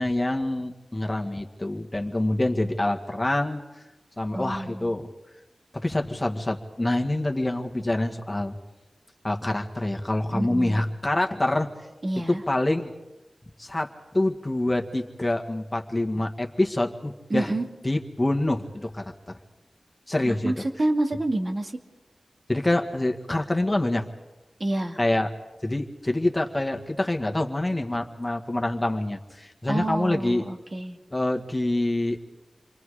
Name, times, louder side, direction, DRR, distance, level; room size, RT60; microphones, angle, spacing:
voice 1, 0.0-3.6 4.2-5.1 5.7-8.5 9.2-11.7 12.3-12.9 13.6-17.5 17.8-19.4 20.1-20.5 22.5-24.1 25.0-25.3 25.6-30.4 31.1-32.2, left 1 dB, 20° left, 2 dB, 1.8 m, -26 dB
voice 2, 4.3-4.9 10.3-10.8 12.0-12.4 17.3-17.7 20.2-21.7 24.6-25.0 29.7-31.0, right 1 dB, 45° right, 2 dB, 2.4 m, -28 dB
29.0 x 23.5 x 5.0 m, 1.0 s
wide cardioid pair, 70°, 0 cm